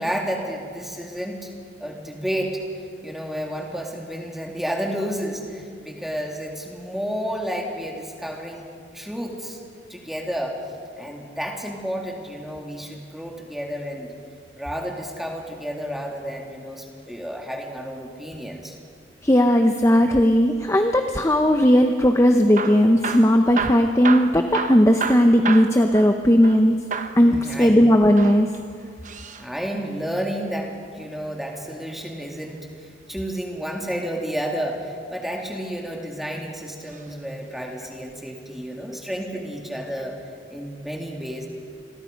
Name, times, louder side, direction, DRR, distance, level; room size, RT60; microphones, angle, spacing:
voice 1, 0.0-1.5 1.8-9.6 9.9-10.6 11.0-14.1 14.6-18.8 27.3-27.8 29.4-40.2 40.5-41.5, equal, ahead, 0 dB, 2.5 m, -31 dB
voice 2, 19.2-26.8 27.1-28.5, equal, 15° left, 5 dB, 0.8 m, -17 dB
Hammer / Drill, 22.4-26.6 26.9-27.2 28.0-29.5 31.2-32.5 34.2-34.6 35.3-36.2 36.8-37.1 37.4-37.5 38.1-38.2, right 5 dB, 40° right, 1.0 m, -31 dB
28.0 x 21.5 x 5.2 m, 2.2 s
head